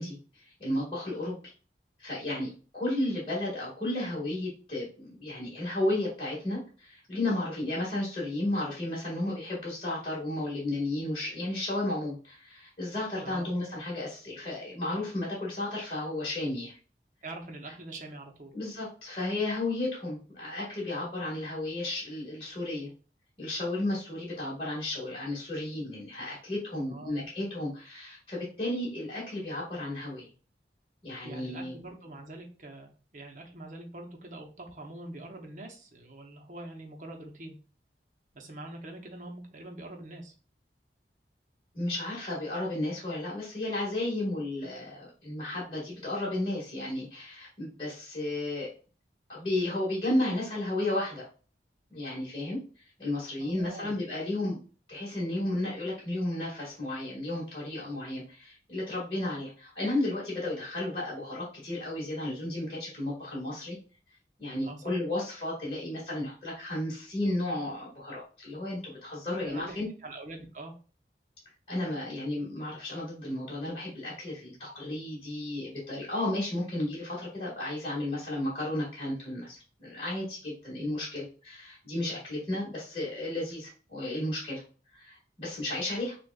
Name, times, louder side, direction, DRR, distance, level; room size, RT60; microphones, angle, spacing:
voice 1, 0.0-1.4 2.0-16.8 18.5-22.9 23.4-30.3 31.0-31.7 41.7-48.7 49.3-51.3 51.9-52.6 53.0-54.6 54.9-63.8 64.4-69.9 71.7-84.6 84.9-86.2, left 1 dB, 30° left, -6 dB, 1.8 m, -33 dB
voice 2, 13.2-13.5 17.2-18.5 26.7-27.3 31.2-37.6 38.3-40.3 53.4-54.0 64.6-64.9 69.4-70.7 80.8-81.0, right 2 dB, 45° right, 3 dB, 0.8 m, -44 dB
6.2 x 2.4 x 2.3 m, 0.37 s
head